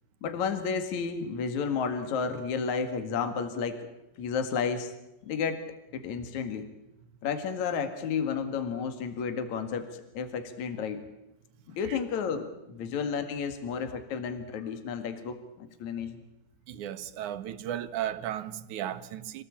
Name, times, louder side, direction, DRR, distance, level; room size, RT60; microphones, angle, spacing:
voice 1, 0.2-3.9 4.2-4.9 5.3-5.6 5.9-6.7 7.2-9.9 10.1-11.0 11.7-16.2, left 6 dB, 65° left, 3.2 m, -32 dB
voice 2, 16.7-19.4, right 11 dB, 75° right, 2.5 m, -35 dB
27.0 x 18.0 x 8.5 m
omnidirectional pair, 3.6 m